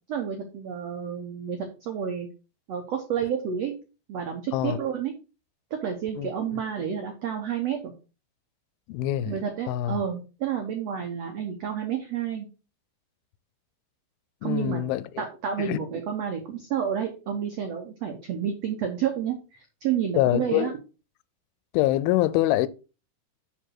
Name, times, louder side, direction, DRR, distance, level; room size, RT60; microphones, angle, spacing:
voice 1, 0.1-2.3 2.7-3.7 4.1-5.1 5.8-7.9 9.2-12.5 14.4-14.8 15.2-20.7, right 8 dB, 85° right, 1.4 m, -30 dB
voice 2, 8.9-9.3 9.7-10.0 14.4-15.0 15.6-15.8 20.2-20.7 21.7-22.7, left 14 dB, 85° left, 2.3 m, -24 dB
9.3 x 4.0 x 4.6 m
omnidirectional pair, 4.4 m